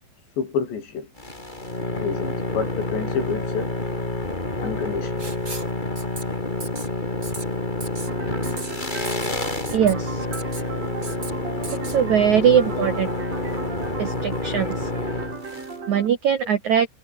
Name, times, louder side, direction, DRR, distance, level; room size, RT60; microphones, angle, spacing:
voice 1, 0.4-1.1 1.9-3.7 4.6-5.3 12.7-12.9, left 6 dB, 60° left, 6.7 m, -29 dB
sound 1, 1.2-15.7, left 2 dB, 10° left, 2.8 m, -28 dB
Writing, 5.2-5.7 6.0-6.2 6.6-6.9 7.2-7.4 7.8-8.1 8.4-8.7 9.0-9.3 9.7-9.9 10.3-10.7 11.0-11.3 11.6-12.0, right 3 dB, 20° right, 3.2 m, -36 dB
sound 2, 8.1-16.1, right 4 dB, 35° right, 5.7 m, -37 dB
voice 2, 9.7-10.2 11.9-13.1 14.0-14.9 15.9-16.9, right 8 dB, 80° right, 1.6 m, -20 dB
omnidirectional pair, 5.7 m